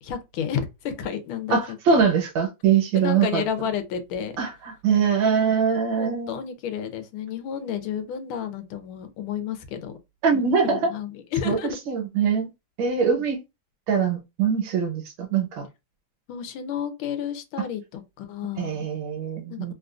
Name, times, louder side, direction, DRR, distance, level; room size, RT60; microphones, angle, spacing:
voice 1, 0.0-1.8 2.9-4.4 6.0-9.9 10.3-11.8 16.3-18.9 19.5-19.7, left 8 dB, 80° left, 1.4 m, -31 dB
voice 2, 1.5-3.4 4.4-6.4 10.2-10.9 11.4-11.6 11.9-12.5 12.8-13.4 13.9-15.7 18.6-19.7, right 6 dB, 70° right, 1.6 m, -23 dB
3.6 x 2.4 x 2.4 m
omnidirectional pair, 2.3 m